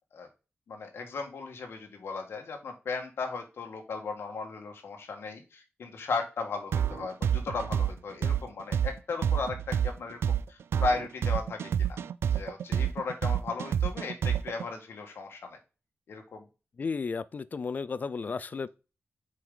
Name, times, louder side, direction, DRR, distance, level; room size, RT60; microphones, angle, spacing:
voice 1, 0.7-12.0 12.3-15.6 16.1-16.5, left 4 dB, 75° left, 1.7 m, -36 dB
sound 1, 6.7-14.6, right 9 dB, 85° right, 0.3 m, -28 dB
voice 2, 16.8-18.7, left 5 dB, 40° left, 0.4 m, -33 dB
7.5 x 4.8 x 3.9 m
wide cardioid pair, 130°, 4 cm